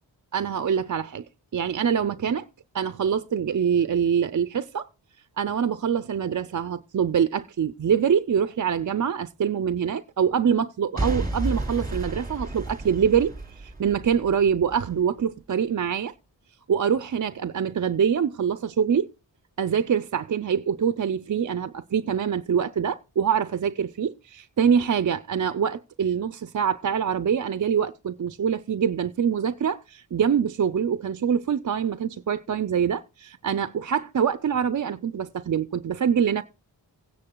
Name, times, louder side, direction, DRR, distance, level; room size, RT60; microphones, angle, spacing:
voice 1, 0.3-1.2 1.5-2.5 2.7-4.9 5.4-16.1 16.7-19.1 19.6-36.4, right 7 dB, 45° right, 0.5 m, -25 dB
Boom / Shatter / Crushing, 11.0-15.0 15.5-15.6, right 2 dB, 20° right, 3.1 m, -31 dB
16.5 x 9.7 x 2.2 m
wide cardioid pair, 80°, 43 cm